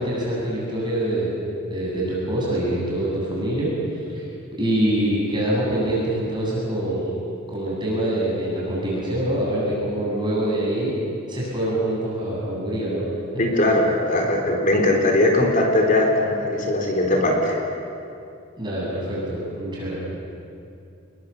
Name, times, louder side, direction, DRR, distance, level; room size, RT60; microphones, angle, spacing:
voice 1, 0.0-1.4 1.7-3.7 4.1-4.2 4.6-7.2 7.5-10.9 11.3-13.1 13.5-13.6 18.6-20.0, right 1 dB, 20° right, -6 dB, 8.0 m, -25 dB
voice 2, 13.4-17.6, left 1 dB, 40° left, 1 dB, 3.5 m, -20 dB
29.0 x 21.0 x 7.0 m, 2.6 s
head